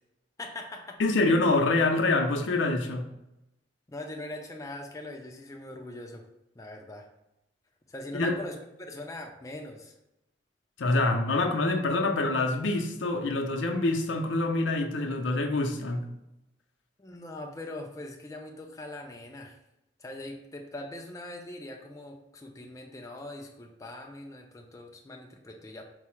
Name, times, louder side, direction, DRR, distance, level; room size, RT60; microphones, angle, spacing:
voice 1, 0.4-1.0 3.9-6.3 6.6-7.1 7.9-9.9 17.0-19.6 20.0-25.8, left 1 dB, 20° left, 2 dB, 0.4 m, -41 dB
voice 2, 1.0-3.0 8.1-8.4 10.8-16.1, left 2 dB, 85° left, 4 dB, 0.5 m, -26 dB
4.6 x 2.0 x 4.3 m, 0.88 s
head